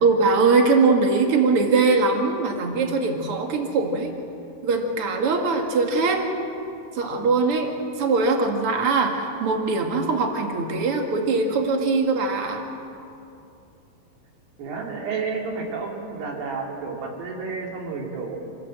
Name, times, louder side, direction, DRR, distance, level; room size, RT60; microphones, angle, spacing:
voice 1, 0.0-4.2 4.6-6.3 6.9-7.7 8.0-12.6, right 4 dB, 45° right, 3 dB, 2.0 m, -21 dB
voice 2, 14.6-18.4, right 4 dB, 75° right, 0 dB, 4.8 m, -31 dB
26.5 x 16.0 x 7.6 m, 2.7 s
omnidirectional pair, 4.9 m